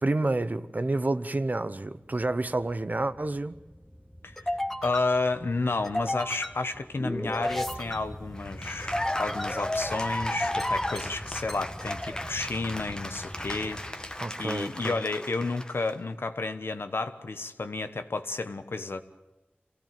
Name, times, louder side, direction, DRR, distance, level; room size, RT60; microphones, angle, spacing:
voice 1, 0.0-3.5 14.2-14.9, right 2 dB, 45° right, 0.9 m, -29 dB
sound 1, 2.0-14.8, left 1 dB, 5° left, 1.7 m, -37 dB
voice 2, 4.8-19.0, left 3 dB, 85° left, 1.2 m, -31 dB
Cheering / Applause, 8.4-15.9, left 1 dB, 20° left, 1.3 m, -35 dB
26.0 x 16.5 x 9.1 m
wide cardioid pair, 60°, 4 cm